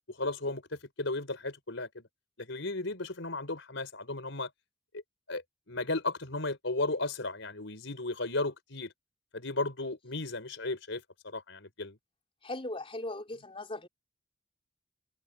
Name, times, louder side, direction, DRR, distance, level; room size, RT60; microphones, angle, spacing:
voice 1, 0.1-2.1 2.4-4.5 4.9-5.0 5.3-5.4 5.7-8.9 9.3-12.0, left 2 dB, 70° left, 5.7 m, -35 dB
voice 2, 12.4-13.9, left 2 dB, 30° left, 3.8 m, -38 dB
head